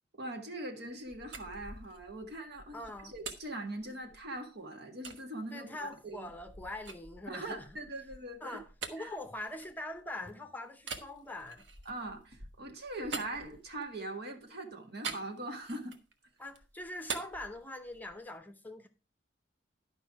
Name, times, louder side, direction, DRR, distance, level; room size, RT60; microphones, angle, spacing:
voice 1, 0.2-6.3 7.3-8.6 9.0-9.2 11.9-16.0, right 1 dB, 60° right, 1.7 m, -41 dB
sound 1, 1.1-4.4 5.0-5.2 5.8-10.2 10.8-14.0 15.0-16.1 16.5-18.3, right 4 dB, 75° right, 1.2 m, -45 dB
voice 2, 2.7-3.1 5.5-7.7 8.4-11.6 16.4-18.9, left 1 dB, 10° left, 0.7 m, -43 dB
11.5 x 5.4 x 4.6 m
head